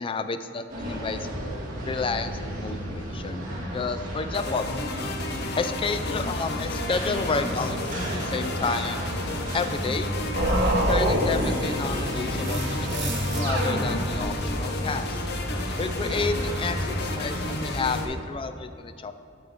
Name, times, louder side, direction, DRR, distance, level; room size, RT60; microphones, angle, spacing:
voice 1, 0.0-1.3 1.8-3.5 3.7-4.7 5.5-9.1 9.5-10.1 10.9-15.2 15.8-19.1, left 4 dB, 25° left, 10 dB, 0.3 m, -31 dB
sound 1, 0.7-18.0, equal, 45° right, 1.8 m, -33 dB
sound 2, 4.3-18.1, left 2 dB, 55° left, 0.8 m, -33 dB
sound 3, 10.4-14.5, right 1 dB, 60° right, 1.4 m, -27 dB
10.0 x 6.6 x 3.6 m, 2.6 s
head